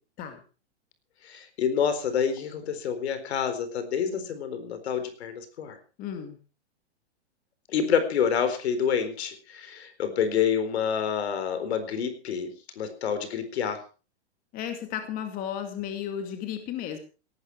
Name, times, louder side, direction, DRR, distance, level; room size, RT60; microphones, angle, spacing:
voice 1, 1.2-5.8 7.7-12.5 12.8-13.8, left 7 dB, 70° left, 10 dB, 4.2 m, -28 dB
voice 2, 6.0-6.4 14.5-17.0, left 9 dB, 25° left, 6 dB, 2.3 m, -34 dB
18.0 x 12.0 x 4.7 m, 0.35 s
hypercardioid pair, 155°, 34 cm